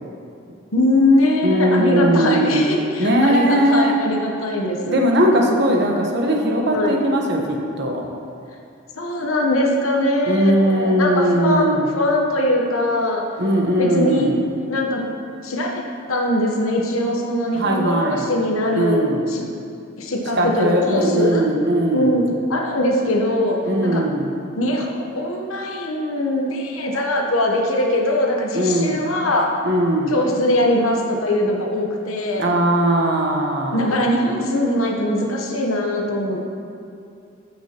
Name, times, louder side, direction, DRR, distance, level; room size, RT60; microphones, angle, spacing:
voice 1, 0.7-5.0 6.7-7.0 8.9-13.2 13.8-14.3 14.7-15.0 15.4-15.8 16.1-19.4 20.0-21.4 21.9-22.2 22.5-24.0 24.6-29.5 30.1-32.5 33.7-36.6, left 1 dB, 80° left, 0 dB, 1.0 m, -21 dB
voice 2, 1.4-2.6 3.0-4.0 4.9-8.0 10.2-11.8 13.4-14.4 17.5-18.3 18.7-19.3 20.4-22.2 23.6-24.3 28.5-29.0 29.6-30.1 32.4-33.9, right 1 dB, 55° right, 0 dB, 1.1 m, -19 dB
13.5 x 6.3 x 2.9 m, 2.5 s
head